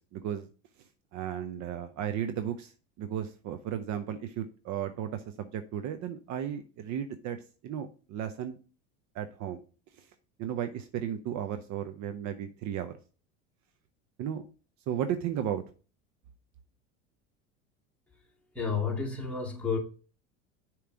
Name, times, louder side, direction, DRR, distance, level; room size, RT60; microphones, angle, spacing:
voice 1, 0.1-0.5 1.1-2.7 3.0-7.4 7.6-8.6 9.1-9.6 10.4-13.0 14.2-14.4 14.9-15.6, right 9 dB, 50° right, 0.7 m, -34 dB
voice 2, 18.5-19.8, left 5 dB, 5° left, 2.0 m, -31 dB
6.7 x 3.1 x 5.0 m
hypercardioid pair, 90°, 36 cm